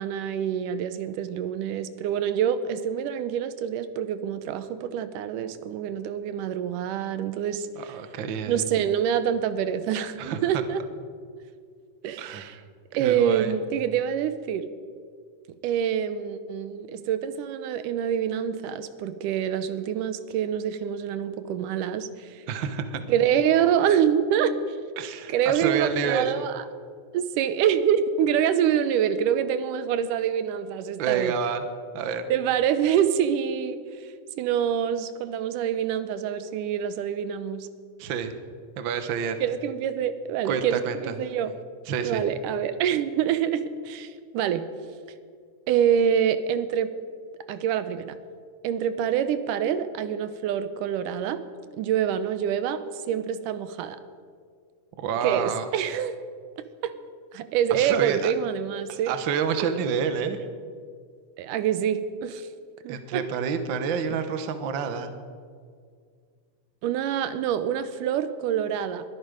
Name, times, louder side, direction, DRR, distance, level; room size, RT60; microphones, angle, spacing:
voice 1, 0.0-7.7 8.5-10.8 12.0-12.6 12.9-14.7 15.6-22.4 23.1-24.8 25.3-26.6 27.1-31.3 32.3-34.1 34.4-37.7 39.4-41.6 42.0-44.6 45.7-46.9 47.5-48.1 48.6-51.4 51.8-52.8 53.1-54.0 55.2-56.2 56.8-56.9 57.3-59.1 61.4-62.5 62.8-63.2 66.8-69.0, right 9 dB, 85° right, 12 dB, 2.3 m, -26 dB
voice 2, 7.8-8.6 10.2-10.4 12.2-12.5 13.0-13.5 22.5-23.0 25.0-26.3 31.0-31.6 31.9-32.3 38.0-38.3 38.8-39.4 40.4-41.0 41.9-42.2 55.0-55.6 57.7-58.3 58.9-60.4 62.9-65.1, right 7 dB, 60° right, 9 dB, 1.2 m, -28 dB
21.5 x 12.5 x 5.1 m, 2.1 s
omnidirectional pair, 3.7 m